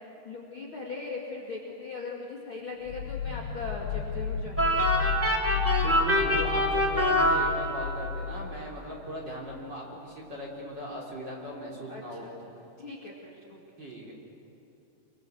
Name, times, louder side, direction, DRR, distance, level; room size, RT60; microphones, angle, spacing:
voice 1, 0.2-5.2 6.3-6.6 11.9-12.3 12.8-13.6, left 3 dB, 35° left, -2 dB, 2.3 m, -39 dB
sound 1, 2.9-9.6, left 6 dB, 75° left, 3.2 m, -33 dB
sound 2, 4.6-8.1, equal, 5° right, 1.1 m, -25 dB
voice 2, 5.8-12.3 13.8-14.1, equal, 25° right, -2 dB, 3.5 m, -38 dB
25.5 x 24.0 x 7.9 m, 2.9 s
omnidirectional pair, 4.9 m